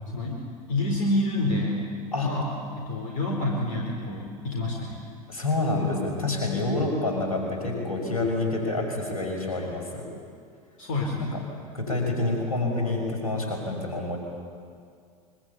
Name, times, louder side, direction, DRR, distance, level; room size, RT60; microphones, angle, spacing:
voice 1, 0.1-0.4 0.7-1.9 2.2-2.5 2.8-5.0 10.8-11.3, left 1 dB, 65° left, 0 dB, 4.5 m, -28 dB
voice 2, 5.3-10.0 11.7-14.2, left 2 dB, 85° left, 1 dB, 6.1 m, -27 dB
25.0 x 23.0 x 8.6 m, 2.2 s
figure-of-eight pair, 75°, 18 cm